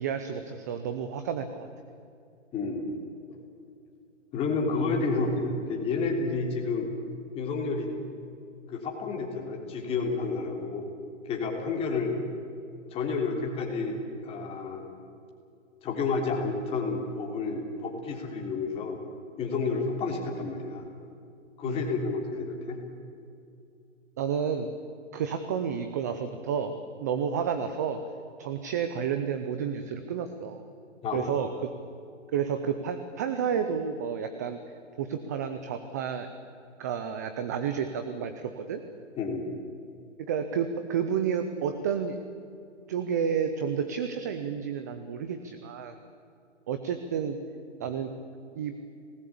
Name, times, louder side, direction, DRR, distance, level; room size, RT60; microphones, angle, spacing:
voice 1, 0.0-1.7 21.6-21.8 24.2-24.7 25.1-26.7 27.0-28.0 28.4-30.6 31.1-31.7 32.3-34.6 35.0-36.3 36.8-38.8 40.3-42.2 42.9-46.0 46.7-47.4 47.8-48.1 48.6-48.7, right 7 dB, 15° right, 8 dB, 0.5 m, -30 dB
voice 2, 2.5-3.0 3.3-3.4 4.3-6.9 7.4-7.9 8.7-10.9 11.3-12.2 12.9-14.8 15.8-19.0 19.4-20.9 21.6-22.8 31.0-31.3 39.2-39.5, left 4 dB, 15° left, 1 dB, 3.3 m, -30 dB
25.5 x 19.0 x 8.6 m, 2.6 s
hypercardioid pair, 150°, 37 cm